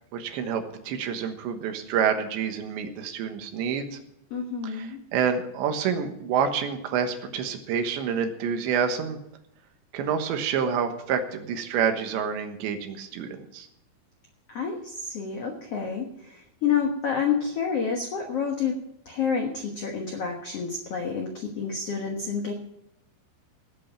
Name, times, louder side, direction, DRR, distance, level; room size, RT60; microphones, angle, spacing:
voice 1, 0.1-4.0 4.6-9.2 9.9-13.7, right 7 dB, 80° right, 6 dB, 3.6 m, -28 dB
voice 2, 4.3-5.0 14.5-18.8 19.0-22.5, left 6 dB, 80° left, 2 dB, 1.3 m, -29 dB
17.5 x 8.2 x 5.8 m, 0.79 s
omnidirectional pair, 5.1 m